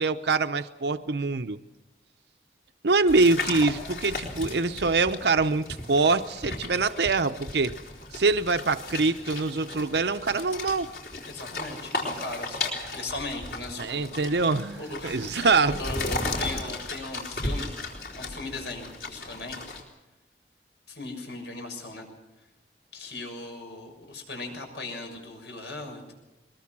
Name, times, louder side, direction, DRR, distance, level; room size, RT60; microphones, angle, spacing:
voice 1, 0.0-1.6 2.8-7.7 8.1-10.9 13.8-15.8, right 3 dB, 75° right, 8 dB, 0.7 m, -24 dB
sound 1, 3.1-19.8, left 2 dB, 60° left, 3.9 m, -36 dB
voice 2, 11.3-14.4 14.8-17.7 18.2-19.6 20.9-22.1 22.9-26.1, left 2 dB, 85° left, 3 dB, 6.7 m, -38 dB
22.0 x 21.5 x 6.1 m, 1.0 s
head